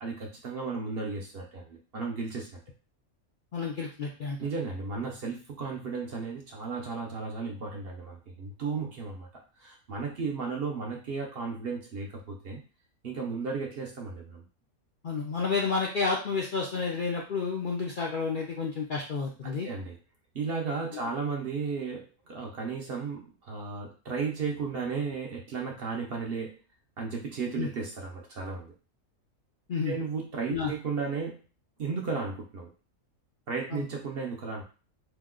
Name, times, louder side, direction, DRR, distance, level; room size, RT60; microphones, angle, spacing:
voice 1, 0.0-2.6 4.4-9.3 9.6-12.6 13.0-14.4 19.4-20.0 20.3-26.6 27.0-28.7 29.9-31.4 31.8-32.7 33.5-34.6, right 4 dB, 55° right, 0 dB, 0.8 m, -34 dB
voice 2, 3.5-4.4 15.0-19.7 27.6-27.7 29.7-30.0 30.5-30.7 33.7-33.8, left 4 dB, 60° left, -2 dB, 0.5 m, -30 dB
2.9 x 2.2 x 3.6 m, 0.35 s
omnidirectional pair, 1.4 m